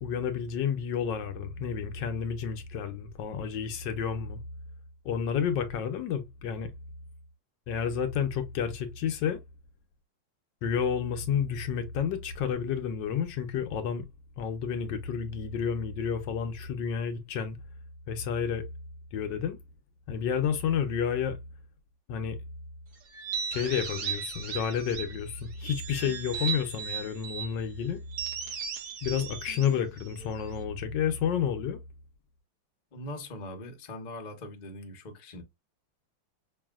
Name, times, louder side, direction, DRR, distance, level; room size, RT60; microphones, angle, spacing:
voice 1, 0.0-4.4 5.0-6.7 7.7-9.4 10.6-14.1 14.4-17.6 18.1-18.6 19.1-19.6 20.1-21.4 22.1-22.4 23.5-28.0 29.0-31.8, left 7 dB, 75° left, 1.3 m, -30 dB
sound 1, 23.1-25.2 25.6-27.5 28.1-30.6, right 7 dB, 60° right, 1.4 m, -36 dB
voice 2, 32.9-35.4, left 1 dB, 35° left, 0.7 m, -41 dB
5.4 x 2.6 x 2.3 m
omnidirectional pair, 2.1 m